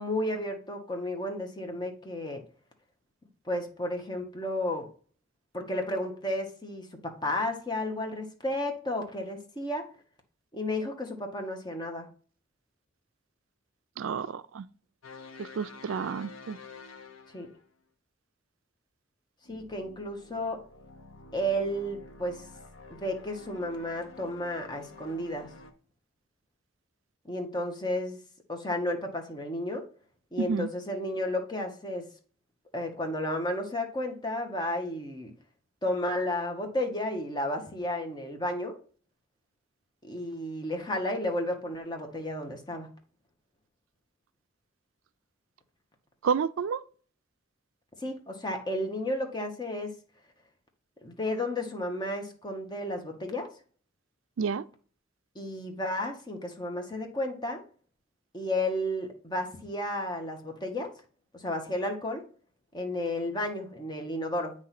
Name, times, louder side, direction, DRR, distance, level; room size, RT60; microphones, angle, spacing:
voice 1, 0.0-2.4 3.5-4.9 5.5-9.9 10.5-12.1 17.3-17.5 19.5-20.6 21.3-22.4 22.9-25.5 27.2-28.2 28.5-29.8 30.3-32.1 32.7-35.3 35.8-38.7 40.0-42.9 48.0-49.9 51.0-53.5 55.3-57.6 58.3-60.9 61.3-62.2 62.7-64.5, left 1 dB, 20° left, 1.1 m, -32 dB
voice 2, 14.0-14.7 15.4-16.6 30.4-30.7 46.2-46.8 54.4-54.6, right 6 dB, 80° right, 0.4 m, -30 dB
sound 1, 15.0-17.7 19.4-25.7, left 3 dB, 90° left, 0.9 m, -49 dB
8.5 x 3.1 x 5.8 m
head